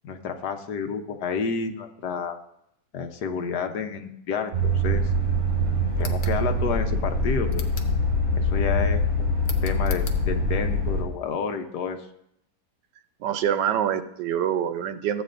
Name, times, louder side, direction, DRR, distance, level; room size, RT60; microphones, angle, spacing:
voice 1, 0.0-2.4 2.9-5.1 6.0-7.7 8.3-9.0 9.6-12.1, left 6 dB, 75° left, 6 dB, 1.4 m, -30 dB
sound 1, 4.5-11.0, equal, 35° right, 3.1 m, -24 dB
sound 2, 5.9-6.4 7.5-8.0 9.4-10.2, left 6 dB, 55° left, 1.0 m, -40 dB
voice 2, 13.2-15.2, right 9 dB, 85° right, 11 dB, 1.3 m, -25 dB
14.5 x 8.2 x 2.6 m, 0.75 s
omnidirectional pair, 1.8 m